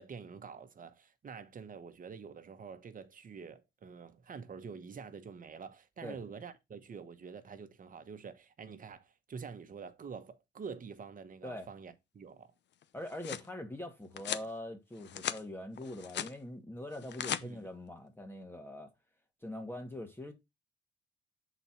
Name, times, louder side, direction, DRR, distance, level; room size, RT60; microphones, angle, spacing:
voice 1, 0.0-12.5 17.4-17.7, right 6 dB, 45° right, 1.1 m, -47 dB
sound 1, 12.8-13.5 14.2-14.5 14.9-15.4 15.8-16.3 16.9-17.4, left 10 dB, 65° left, 0.7 m, -38 dB
voice 2, 12.9-18.9 19.4-20.3, left 1 dB, 10° left, 1.3 m, -43 dB
7.0 x 4.1 x 4.4 m
cardioid pair, 90°, 20 cm